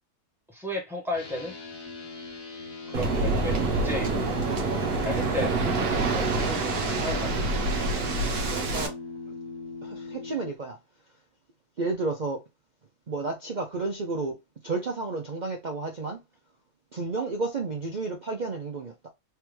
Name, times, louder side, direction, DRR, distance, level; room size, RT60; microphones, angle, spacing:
voice 1, 0.5-1.5 2.9-4.3 5.0-5.6 6.1-7.6, left 2 dB, ahead, 1.1 m, -34 dB
sound 1, 1.1-10.5, left 3 dB, 65° left, 1.5 m, -39 dB
Waves surf, 2.9-8.9, right 3 dB, 45° right, 0.9 m, -26 dB
voice 2, 2.9-3.3 8.5-9.0 9.8-10.8 11.8-12.4 13.1-14.4 14.6-16.2 16.9-19.1, right 3 dB, 65° right, 0.4 m, -32 dB
3.5 x 3.4 x 3.1 m
omnidirectional pair, 1.6 m